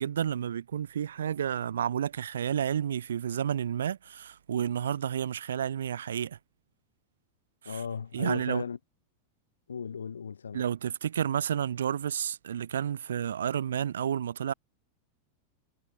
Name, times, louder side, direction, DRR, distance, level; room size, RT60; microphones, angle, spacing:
voice 1, 0.0-6.4 7.6-7.8 8.1-8.6 10.5-14.5, right 9 dB, 65° right, 1.6 m, -31 dB
voice 2, 7.7-8.8 9.7-10.6, left 6 dB, 70° left, 0.7 m, -36 dB
figure-of-eight pair, 90°, 0 cm